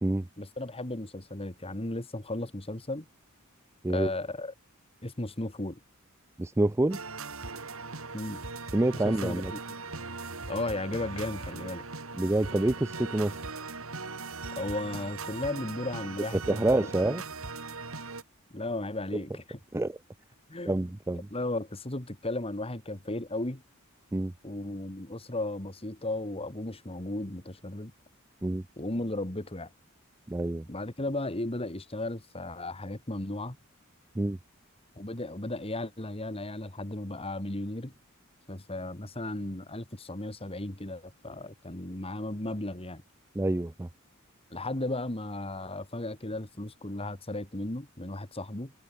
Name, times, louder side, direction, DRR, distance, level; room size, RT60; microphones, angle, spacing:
voice 1, 0.4-3.1 3.9-4.5 5.0-5.8 8.1-8.4 9.0-10.0 10.5-11.8 14.6-16.9 18.5-19.6 20.5-20.8 21.3-23.6 24.4-27.9 28.8-29.7 30.7-33.6 35.0-37.9 38.5-43.0 44.5-48.7, left 2 dB, 25° left, 2.2 m, -35 dB
voice 2, 6.4-7.0 8.7-9.5 12.2-13.4 16.3-17.2 19.7-20.0 20.6-21.3 24.1-24.3 28.4-28.6 30.3-30.7 34.1-34.4 43.3-43.9, right 1 dB, 10° right, 0.4 m, -27 dB
sound 1, 6.9-18.2, right 4 dB, 70° right, 3.3 m, -39 dB
head